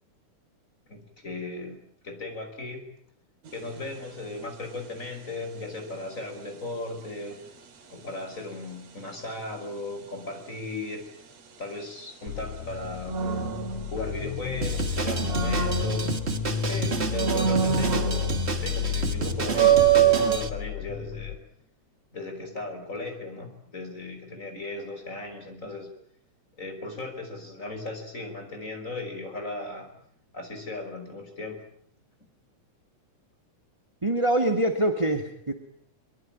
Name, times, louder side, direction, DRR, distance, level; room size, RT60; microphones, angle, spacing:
voice 1, 0.9-2.9 3.5-7.4 7.9-11.1 11.6-13.3 13.9-16.1 16.6-21.4 22.1-25.9 26.6-29.9 30.3-31.6, left 2 dB, 25° left, 5 dB, 5.9 m, -37 dB
sound 1, 3.5-3.8 13.1-14.5 15.0-16.6 17.1-18.7 19.0-19.1 19.5-20.4, right 9 dB, 60° right, 3.4 m, -24 dB
sound 2, 12.3-21.4, left 8 dB, 65° left, 2.5 m, -32 dB
Drum kit, 14.6-20.5, right 5 dB, 30° right, 1.2 m, -31 dB
voice 2, 34.0-35.5, right 1 dB, 10° right, 5 dB, 1.8 m, -24 dB
24.0 x 23.0 x 9.0 m, 0.65 s
omnidirectional pair, 3.5 m